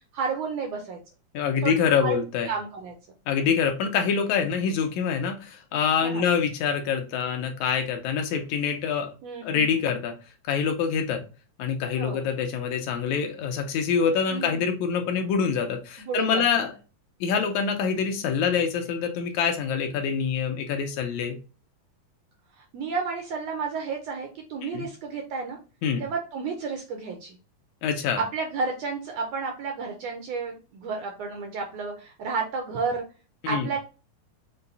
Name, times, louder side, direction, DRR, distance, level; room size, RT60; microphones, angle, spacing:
voice 1, 0.1-1.0 1.6-1.7 2.0-2.2 2.5-2.9 6.0-6.3 9.2-9.8 12.0-12.2 14.3-14.7 16.0-16.4 17.8-17.9 22.6-25.6 26.0-27.4 28.2-33.0 33.5-33.8, right 5 dB, 75° right, 3 dB, 1.6 m, -31 dB
voice 2, 1.3-2.5 3.3-9.1 9.4-10.1 10.5-11.2 11.6-16.7 17.2-21.4 24.6-24.9 25.8-26.0 27.8-28.2 33.4-33.7, left 6 dB, 75° left, 5 dB, 1.9 m, -25 dB
5.5 x 2.2 x 3.9 m, 0.32 s
omnidirectional pair, 3.6 m